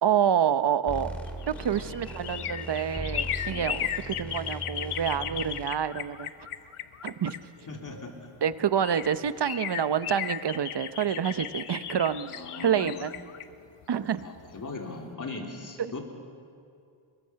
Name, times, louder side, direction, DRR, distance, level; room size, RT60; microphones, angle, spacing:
voice 1, 0.0-1.2 1.5-6.3 7.0-7.4 8.4-12.3 12.6-13.2 13.9-14.3 15.8-15.9, right 8 dB, 55° right, 13 dB, 0.8 m, -27 dB
sound 1, 0.9-5.6, equal, ahead, 2.5 m, -39 dB
sound 2, 1.1-8.0 8.5-8.6 8.8-14.6 14.9-15.0, left 9 dB, 85° left, 1.0 m, -36 dB
voice 2, 7.7-8.1 12.2-13.0 14.2-16.0, left 3 dB, 40° left, 0 dB, 3.2 m, -39 dB
27.5 x 23.0 x 5.8 m, 2.4 s
wide cardioid pair, 155°, 50 cm